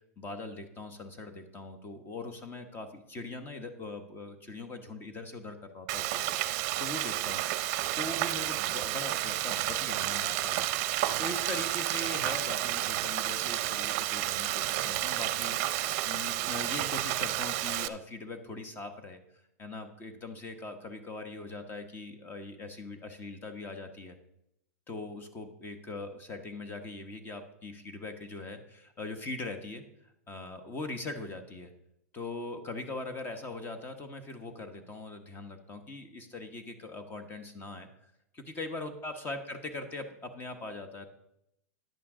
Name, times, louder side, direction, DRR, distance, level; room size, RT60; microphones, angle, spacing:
voice 1, 0.2-7.4 7.9-10.7 11.2-19.2 19.6-24.2 24.9-31.7 32.1-37.9 38.3-41.1, left 2 dB, 25° left, 8 dB, 1.2 m, -41 dB
Frying (food), 5.9-17.9, right 15 dB, 50° right, 0.6 m, -31 dB
10.5 x 8.6 x 3.8 m, 0.79 s
hypercardioid pair, 130°, 9 cm